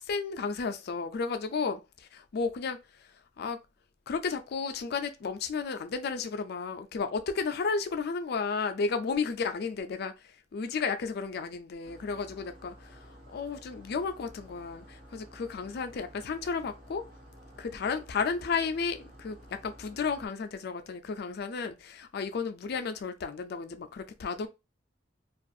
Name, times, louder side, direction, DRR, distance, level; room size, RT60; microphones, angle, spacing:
voice 1, 0.0-3.1 3.4-3.6 4.1-17.1 17.6-24.5, left 5 dB, 60° left, 0.4 m, -33 dB
sound 1, 11.8-20.3, equal, 45° right, 1.1 m, -52 dB
2.4 x 2.3 x 2.6 m
head